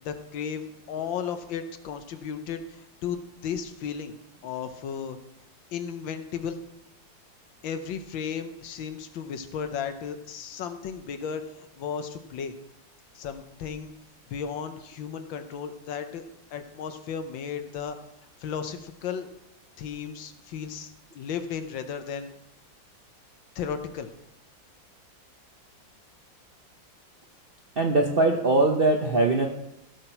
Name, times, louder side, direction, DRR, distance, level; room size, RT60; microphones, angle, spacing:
voice 1, 0.0-4.1 4.4-5.2 5.7-6.6 7.6-12.5 13.1-13.9 14.3-16.2 16.5-18.0 18.4-19.3 19.8-22.3 23.5-24.1, left 7 dB, 80° left, 8 dB, 1.6 m, -34 dB
voice 2, 27.8-29.5, right 2 dB, 55° right, 2 dB, 0.6 m, -21 dB
16.0 x 5.9 x 4.5 m, 0.87 s
omnidirectional pair, 2.1 m